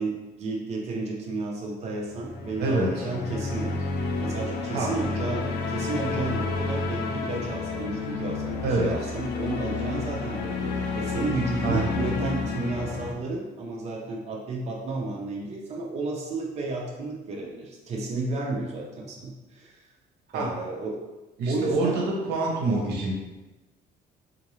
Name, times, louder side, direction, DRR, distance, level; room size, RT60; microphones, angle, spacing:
voice 1, 0.0-3.9 4.2-19.8 20.3-21.0 21.5-22.0, right 3 dB, 40° right, -2 dB, 0.6 m, -32 dB
sound 1, 2.1-13.1, left 4 dB, 75° left, 0.5 m, -31 dB
voice 2, 2.6-3.1 4.7-4.9 8.6-8.9 11.6-12.0 20.3-20.6 21.4-23.1, right 2 dB, 80° right, -1 dB, 0.8 m, -26 dB
3.7 x 2.6 x 3.1 m, 1.1 s
cardioid pair, 110°, 17 cm